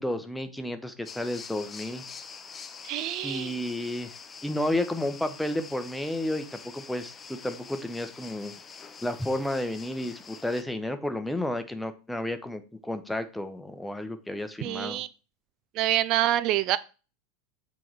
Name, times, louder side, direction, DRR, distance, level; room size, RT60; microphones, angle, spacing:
voice 1, 0.0-2.0 3.2-4.1 4.4-8.5 9.0-15.0, left 1 dB, 5° left, 1.0 m, -32 dB
sound 1, 1.1-10.6, left 6 dB, 25° left, 0.6 m, -45 dB
voice 2, 2.8-3.5 14.6-15.1 15.7-16.8, right 14 dB, 45° right, 0.4 m, -26 dB
7.5 x 4.1 x 4.7 m
figure-of-eight pair, 80°, 0 cm